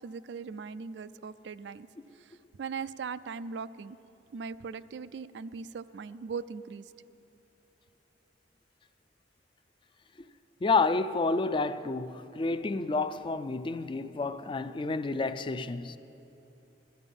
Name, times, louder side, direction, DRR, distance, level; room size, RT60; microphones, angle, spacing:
voice 1, 0.0-1.9 2.1-4.0 4.3-6.8, right 5 dB, 70° right, 0.4 m, -39 dB
voice 2, 10.6-16.0, left 3 dB, 30° left, 0.4 m, -29 dB
16.5 x 12.5 x 5.3 m
head